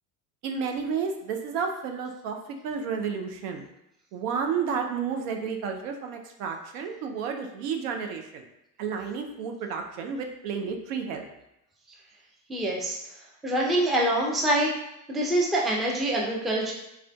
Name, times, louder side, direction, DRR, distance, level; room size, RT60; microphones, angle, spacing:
voice 1, 0.4-3.7 4.1-8.4 8.8-11.3, right 6 dB, 75° right, 4 dB, 0.6 m, -31 dB
voice 2, 12.5-13.0 13.4-14.7 15.1-16.7, right 1 dB, ahead, -3 dB, 0.3 m, -25 dB
3.4 x 2.4 x 2.2 m, 0.86 s
hypercardioid pair, 75°, 47 cm